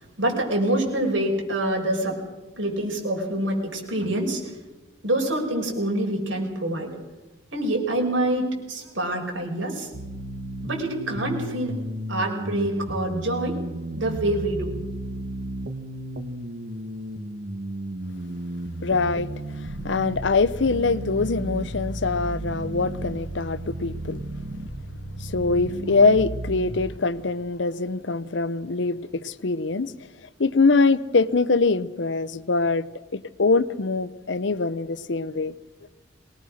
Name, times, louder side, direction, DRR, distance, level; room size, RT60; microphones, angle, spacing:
voice 1, 0.0-2.2 2.6-4.5 5.0-6.9 7.5-9.9 10.6-11.7 12.1-13.6 14.0-14.8, right 1 dB, 90° right, 5.8 m, -26 dB
sound 1, 9.9-26.9, right 1 dB, 65° right, 1.5 m, -33 dB
voice 2, 18.8-19.3 19.6-24.2 25.2-29.9 30.4-32.8 33.1-35.5, left 3 dB, 70° left, 0.8 m, -23 dB
23.0 x 19.5 x 6.5 m
head